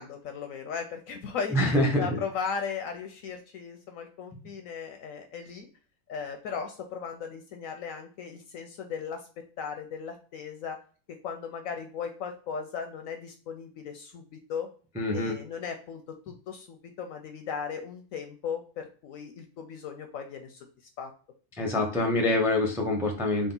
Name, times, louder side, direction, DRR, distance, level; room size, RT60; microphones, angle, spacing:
voice 1, 0.0-5.7 6.1-9.3 9.6-10.8 11.2-14.7 15.1-20.6 21.0-21.1, left 6 dB, 70° left, 5 dB, 0.9 m, -37 dB
voice 2, 1.5-2.2 15.0-15.3 21.6-23.5, left 1 dB, 5° right, 3 dB, 0.4 m, -25 dB
3.8 x 2.4 x 3.8 m, 0.40 s
omnidirectional pair, 1.7 m